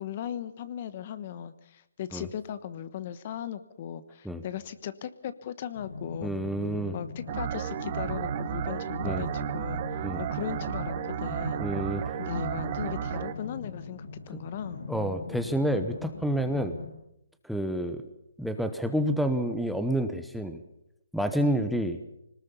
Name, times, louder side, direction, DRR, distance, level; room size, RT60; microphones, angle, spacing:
voice 1, 0.0-6.4 6.9-11.6 12.2-14.8 21.4-21.6, left 9 dB, 40° left, 14 dB, 1.1 m, -38 dB
sound 1, 5.7-16.9, left 3 dB, 85° left, 6.6 m, -40 dB
voice 2, 6.2-6.9 9.0-9.3 10.0-10.2 11.6-12.0 14.9-16.7 17.4-18.0 18.4-20.6 21.1-22.0, right 1 dB, ahead, 9 dB, 1.0 m, -29 dB
sound 2, 7.3-13.3, right 11 dB, 35° right, 1.2 m, -33 dB
21.5 x 19.5 x 7.0 m, 0.81 s
hypercardioid pair, 155°, 0 cm